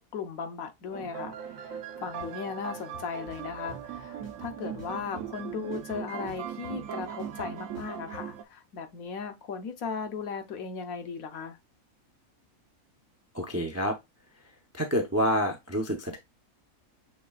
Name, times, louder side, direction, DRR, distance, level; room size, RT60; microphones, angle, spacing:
voice 1, 0.0-11.6, left 6 dB, 75° left, 1.2 m, -37 dB
sound 1, 0.9-8.4, right 9 dB, 70° right, 1.0 m, -39 dB
sound 2, 2.2-2.3 2.7-3.8 4.2-5.4 5.7-8.2, left 7 dB, 90° left, 2.9 m, -49 dB
voice 2, 13.3-14.0 14.7-16.2, equal, 25° right, 0.3 m, -28 dB
6.6 x 3.1 x 2.3 m
omnidirectional pair, 1.5 m